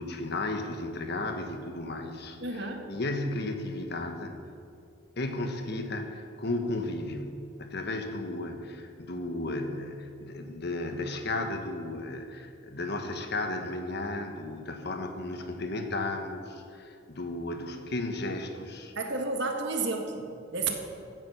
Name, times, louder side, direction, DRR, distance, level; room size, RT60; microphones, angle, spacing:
voice 1, 0.0-4.3 5.2-18.9, left 2 dB, 55° left, 6 dB, 1.4 m, -34 dB
voice 2, 2.4-2.8 19.0-20.7, right 3 dB, 60° right, 4 dB, 1.7 m, -31 dB
16.0 x 9.6 x 5.8 m, 2.4 s
head